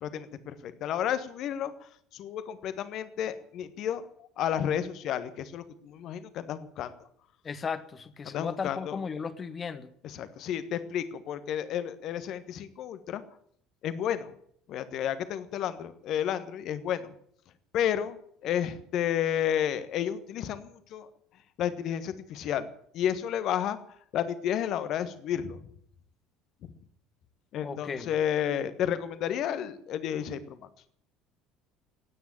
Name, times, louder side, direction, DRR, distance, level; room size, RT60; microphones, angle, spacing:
voice 1, 0.0-4.0 4.4-6.9 8.2-9.0 10.0-13.2 13.8-14.3 14.7-17.1 17.7-18.2 18.4-21.1 21.6-22.7 22.9-23.8 24.1-25.6 26.6-26.7 27.5-30.6, left 9 dB, 50° left, 1.4 m, -31 dB
voice 2, 7.4-9.9 27.6-28.1, left 5 dB, 30° left, 1.3 m, -35 dB
16.0 x 9.6 x 8.8 m
figure-of-eight pair, 60°, 0 cm